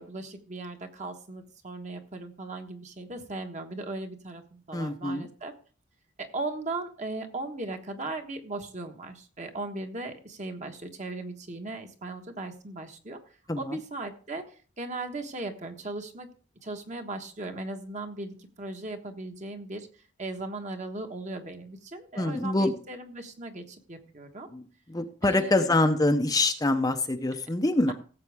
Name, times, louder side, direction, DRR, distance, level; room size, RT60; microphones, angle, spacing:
voice 1, 0.0-5.5 6.2-13.2 13.6-14.4 14.8-16.3 16.6-19.9 20.2-24.5 25.2-25.7 27.9-28.0, right 2 dB, 35° right, 5 dB, 1.4 m, -37 dB
voice 2, 4.7-5.3 13.5-13.8 22.2-22.7 24.5-24.6 24.9-27.9, left 2 dB, 20° left, 6 dB, 0.7 m, -25 dB
16.5 x 7.6 x 3.5 m, 0.40 s
head